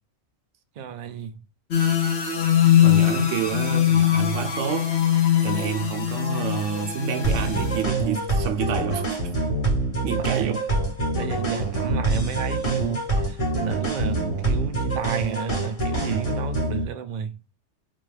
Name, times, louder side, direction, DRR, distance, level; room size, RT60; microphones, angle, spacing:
voice 1, 0.8-1.3 10.1-10.5 11.1-17.5, right 7 dB, 60° right, 0.5 m, -32 dB
sound 1, 1.7-7.8, left 10 dB, 65° left, 1.1 m, -21 dB
voice 2, 2.8-5.0 5.4-9.2 10.0-10.6, right 8 dB, 85° right, 0.9 m, -28 dB
sound 2, 7.2-16.8, right 2 dB, 30° left, 1.1 m, -25 dB
4.1 x 2.3 x 3.2 m
omnidirectional pair, 1.2 m